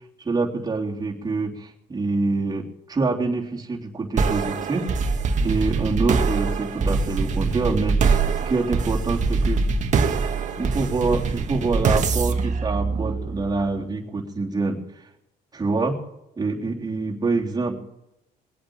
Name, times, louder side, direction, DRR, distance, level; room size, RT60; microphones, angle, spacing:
voice 1, 0.2-4.9 5.4-9.6 10.6-14.8 15.5-16.0 16.4-17.8, right 3 dB, 20° right, -3 dB, 3.5 m, -26 dB
sound 1, 4.2-13.6, right 4 dB, 45° right, 1.8 m, -23 dB
21.5 x 8.7 x 7.3 m, 0.89 s
cardioid pair, 110°, 17 cm